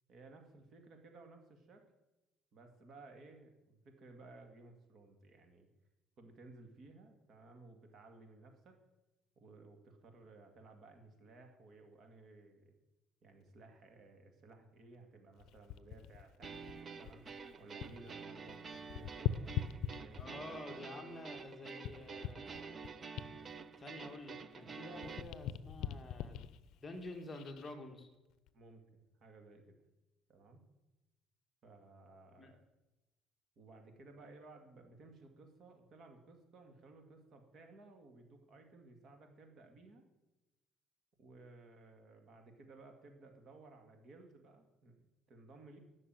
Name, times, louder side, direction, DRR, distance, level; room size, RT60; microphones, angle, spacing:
voice 1, 0.1-1.8 2.5-5.7 6.2-8.8 9.4-12.7 13.2-17.2 17.6-20.4 28.5-29.8 30.3-30.6 31.6-32.6 33.6-40.1 41.2-45.0 45.3-45.8, right 3 dB, 45° right, 4 dB, 2.3 m, -58 dB
sound 1, 15.4-18.1 18.4-20.5 21.1-24.6 24.9-27.7 28.3-28.5, left 9 dB, 65° left, 0.6 m, -43 dB
sound 2, 16.4-25.2, right 5 dB, 30° right, 0.7 m, -49 dB
voice 2, 20.2-22.9 23.8-26.5 26.8-28.1 32.4-32.5, left 2 dB, 20° left, 3 dB, 1.7 m, -49 dB
12.5 x 6.4 x 9.3 m, 1.0 s
cardioid pair, 135°, 0 cm